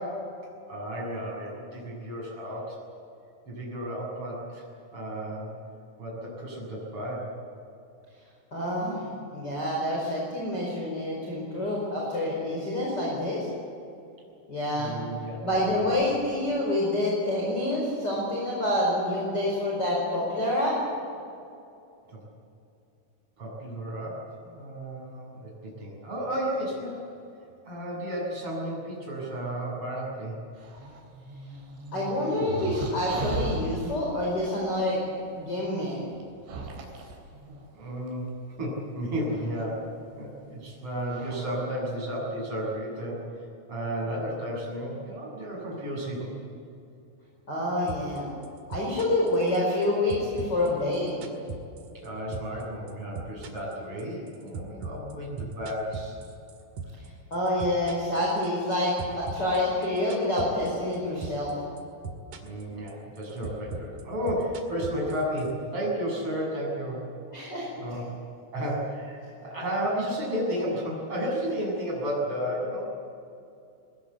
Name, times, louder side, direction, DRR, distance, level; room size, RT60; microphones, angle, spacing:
voice 1, 0.7-2.8 3.5-4.6 4.9-5.5 6.0-7.3 14.7-15.4 15.7-15.9 22.1-22.2 23.4-24.2 24.5-27.0 27.6-30.4 37.7-38.2 38.5-39.9 40.2-43.2 43.7-46.3 51.9-56.2 62.4-67.0 67.8-68.0 68.5-72.9, equal, 25° right, -3 dB, 8.1 m, -33 dB
voice 2, 8.5-9.0 9.3-13.5 14.5-14.9 15.4-20.7 31.9-35.0 35.3-36.0 47.5-48.3 48.7-51.2 57.3-61.5 67.3-68.0, left 1 dB, 20° left, -4 dB, 5.1 m, -27 dB
sound 1, 30.6-33.8 35.1-35.2 36.2-38.1 39.2-39.6 40.6-40.7 41.0-41.4, right 3 dB, 70° right, 6.1 m, -36 dB
sound 2, 47.9-48.2 48.4-49.8 50.1-52.1 52.3-52.6 52.9-57.1 57.3-58.7 59.0-61.0 61.2-61.5 61.8-62.6 62.9-65.5, right 5 dB, 50° right, 2.9 m, -38 dB
22.0 x 21.5 x 8.3 m, 2.6 s
omnidirectional pair, 5.7 m